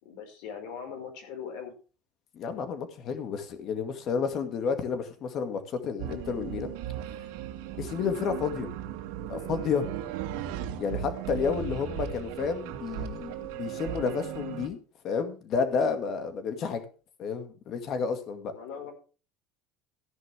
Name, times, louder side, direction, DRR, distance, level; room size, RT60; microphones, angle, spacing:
voice 1, 0.0-1.7 15.8-16.0 18.5-18.9, left 7 dB, 65° left, 4 dB, 5.1 m, -40 dB
voice 2, 2.3-6.7 7.8-8.7 9.3-9.9 10.8-14.8 15.0-16.9 17.2-18.5, left 5 dB, 35° left, 8 dB, 2.1 m, -31 dB
sound 1, 6.0-14.7, right 10 dB, 75° right, 1.9 m, -37 dB
14.5 x 10.5 x 3.5 m, 0.35 s
cardioid pair, 170°, 0 cm